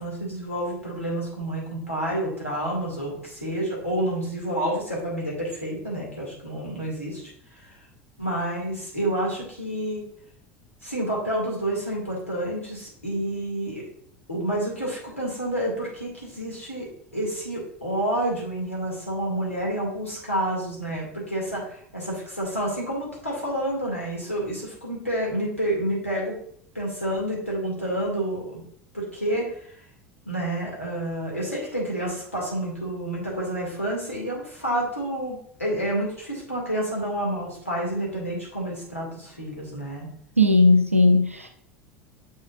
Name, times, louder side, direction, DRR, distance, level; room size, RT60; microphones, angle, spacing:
voice 1, 0.0-7.2 8.2-10.1 10.8-13.8 14.3-16.9 17.1-26.4 26.7-28.6 28.9-29.5 30.3-40.1, right 1 dB, 85° left, -4 dB, 2.2 m, -29 dB
voice 2, 40.4-41.5, left 2 dB, 90° right, 5 dB, 0.6 m, -17 dB
7.3 x 6.4 x 2.5 m, 0.64 s
figure-of-eight pair, 75°, 7 cm